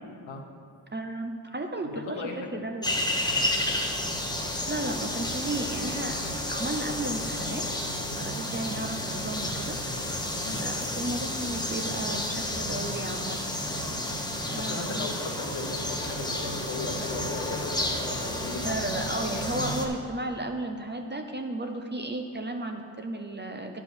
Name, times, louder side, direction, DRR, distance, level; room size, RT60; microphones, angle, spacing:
voice 1, 0.9-2.8 4.7-6.2 6.5-7.6 8.1-9.8 10.6-13.4 14.5-15.1 18.6-23.8, right 2 dB, 25° right, 5 dB, 0.7 m, -34 dB
voice 2, 1.8-2.7 3.3-3.6 8.1-8.2 10.4-10.7 14.0-14.1 14.4-18.8 19.2-19.3, left 3 dB, 70° left, 3 dB, 1.2 m, -37 dB
sound 1, 2.8-19.9, left 1 dB, 10° left, 1.0 m, -31 dB
10.5 x 4.9 x 6.7 m, 2.3 s
cardioid pair, 95°, 47 cm